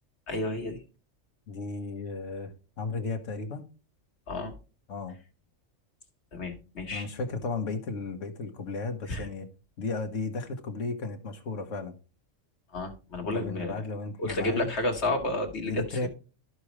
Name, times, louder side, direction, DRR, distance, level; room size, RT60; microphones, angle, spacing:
voice 1, 0.3-0.8 4.3-4.5 6.3-7.1 9.1-9.3 12.7-13.8 14.2-16.1, left 2 dB, 60° left, 3 dB, 2.1 m, -31 dB
voice 2, 1.5-2.5 2.8-3.7 4.9-5.2 6.9-9.4 9.8-11.9 13.2-14.7 15.7-16.1, left 3 dB, 75° left, 4 dB, 1.6 m, -34 dB
13.5 x 5.0 x 3.1 m, 0.33 s
omnidirectional pair, 1.3 m